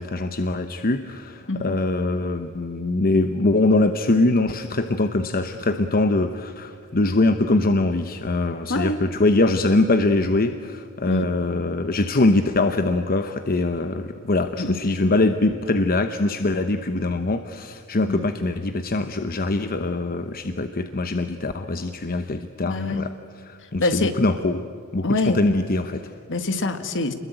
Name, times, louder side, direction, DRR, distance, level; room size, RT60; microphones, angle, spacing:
voice 1, 0.0-23.1 23.4-24.6 24.9-26.1, left 2 dB, 40° left, 9 dB, 0.9 m, -23 dB
voice 2, 22.6-23.0 23.8-24.1 25.0-25.4 26.3-27.1, left 2 dB, 60° left, 9 dB, 1.9 m, -25 dB
28.5 x 21.5 x 9.0 m, 2.3 s
head